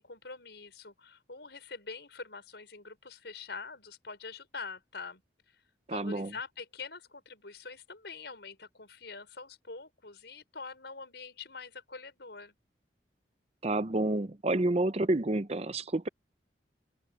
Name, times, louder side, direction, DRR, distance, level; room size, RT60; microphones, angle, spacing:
voice 1, 0.0-5.2 5.9-12.5, left 4 dB, 75° left, 5.2 m, -45 dB
voice 2, 5.9-6.3 13.6-16.1, right 2 dB, 35° right, 0.7 m, -29 dB
open air
head